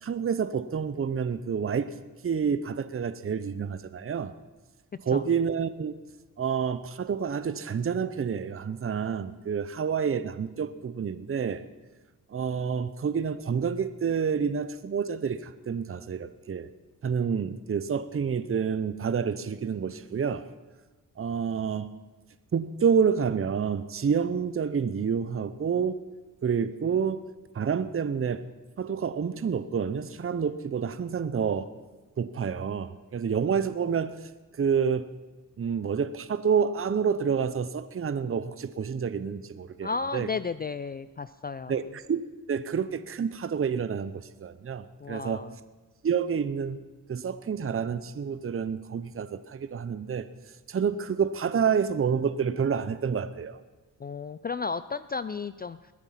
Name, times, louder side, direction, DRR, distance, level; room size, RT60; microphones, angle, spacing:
voice 1, 0.0-1.9 2.2-4.3 5.0-6.0 6.4-11.6 12.3-16.7 17.0-20.4 21.2-21.9 22.5-26.0 26.4-27.2 27.5-28.4 28.8-31.7 32.2-34.1 34.6-35.1 35.6-40.3 41.7-42.2 42.5-45.4 46.0-46.8 47.1-50.3 50.7-53.6, right 6 dB, 40° right, 13 dB, 0.8 m, -28 dB
voice 2, 39.8-41.8 45.0-45.5 54.0-55.8, left 4 dB, 25° left, 14 dB, 0.4 m, -33 dB
20.5 x 9.0 x 5.8 m, 1.2 s
cardioid pair, 75°, 35 cm